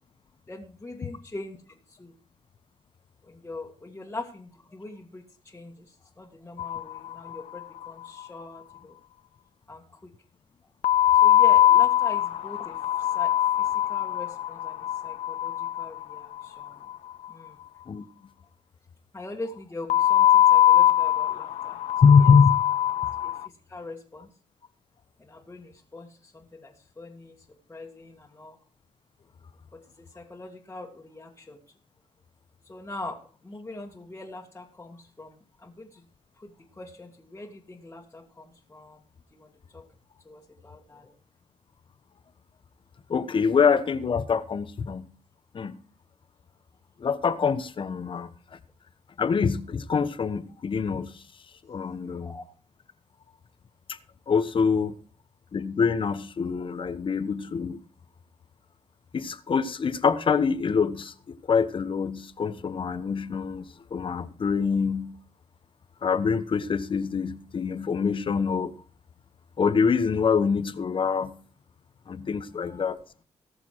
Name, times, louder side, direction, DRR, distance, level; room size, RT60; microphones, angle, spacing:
voice 1, 0.5-2.1 3.3-9.0 9.7-10.1 11.2-16.9 17.3-17.6 19.1-21.8 23.2-23.4 23.7-24.3 25.2-27.4 27.7-28.6 29.7-31.6 32.7-36.0 36.4-39.0 39.3-39.8 40.3-41.1 52.0-52.4 72.5-72.7, left 2 dB, 20° left, 2.0 m, -42 dB
sound 1, 6.6-7.6 7.8-7.9 8.2-8.3 10.8-17.0 19.9-23.5, left 12 dB, 80° left, 0.5 m, -22 dB
voice 2, 22.0-22.6 43.1-45.1 45.5-45.8 47.0-48.3 49.2-51.1 51.7-52.3 54.3-54.9 55.5-57.8 59.1-65.1 66.0-68.7 69.6-71.4 72.1-73.0, left 5 dB, 45° left, 1.1 m, -24 dB
18.5 x 6.9 x 4.7 m
cardioid pair, 95°, 12 cm